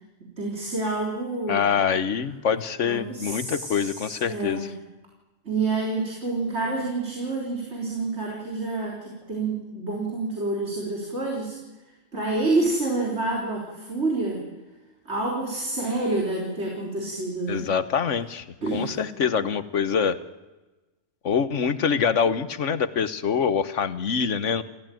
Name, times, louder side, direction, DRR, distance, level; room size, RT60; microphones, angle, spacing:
voice 1, 0.4-1.6 2.8-4.7 5.5-11.6 12.1-14.4 15.1-17.7 18.6-19.4, right 2 dB, 65° right, -1 dB, 4.2 m, -28 dB
voice 2, 1.5-4.6 17.5-18.5 18.7-20.2 21.2-24.6, left 6 dB, 85° left, 13 dB, 1.5 m, -25 dB
28.5 x 15.0 x 9.2 m, 1.1 s
omnidirectional pair, 1.2 m